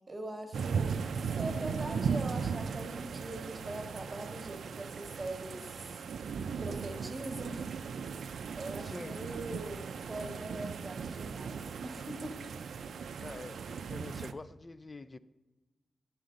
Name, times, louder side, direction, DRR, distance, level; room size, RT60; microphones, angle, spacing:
voice 1, 0.1-6.0 6.6-7.7 8.0-12.4, right 1 dB, 20° right, 1.2 m, -42 dB
sound 1, 0.5-14.3, right 6 dB, 80° right, 0.4 m, -37 dB
voice 2, 8.8-9.2 13.2-15.2, left 3 dB, 20° left, 0.3 m, -46 dB
11.0 x 8.4 x 3.8 m
wide cardioid pair, 170°, 0 cm